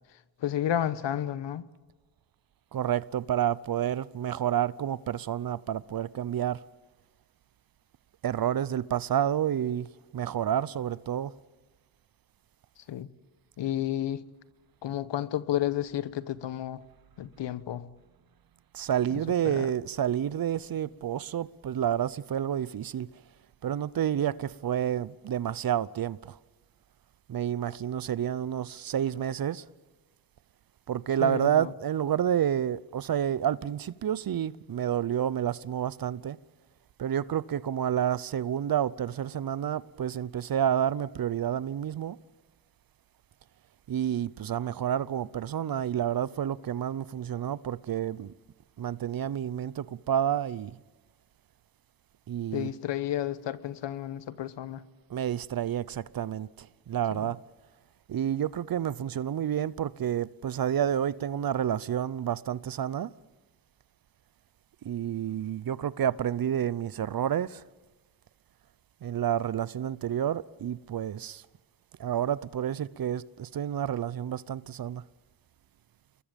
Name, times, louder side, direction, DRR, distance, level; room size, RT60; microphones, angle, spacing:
voice 1, 0.4-1.6 12.9-13.1 13.6-14.2 14.8-16.8 17.2-17.9 19.4-19.7 31.2-31.7 52.5-54.8 57.1-57.3, left 11 dB, 70° left, 1.2 m, -31 dB
voice 2, 2.7-6.6 8.2-9.9 10.1-11.3 18.7-23.1 23.6-26.3 27.3-29.6 30.9-36.4 37.0-42.2 43.9-48.3 48.8-50.8 52.3-52.7 55.1-57.4 58.1-63.1 64.8-67.6 69.0-71.4 72.0-75.0, right 10 dB, 50° right, 0.8 m, -29 dB
28.5 x 21.5 x 5.3 m
supercardioid pair, 60°, 45 cm